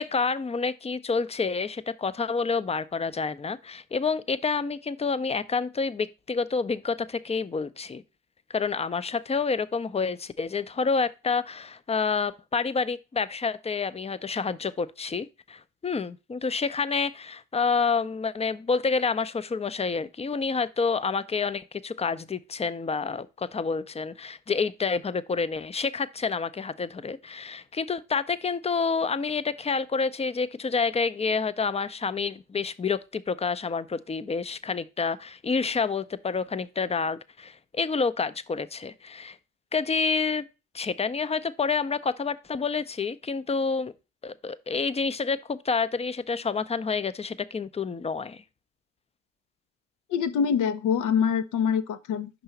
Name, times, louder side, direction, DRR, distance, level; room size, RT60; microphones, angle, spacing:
voice 1, 0.0-8.0 8.5-39.4 39.7-40.4 40.7-43.9 44.2-48.4, left 5 dB, 20° left, 0.5 m, -28 dB
voice 2, 50.1-52.4, left 7 dB, 70° left, 0.7 m, -25 dB
5.5 x 4.0 x 5.8 m
hypercardioid pair, 50°, 32 cm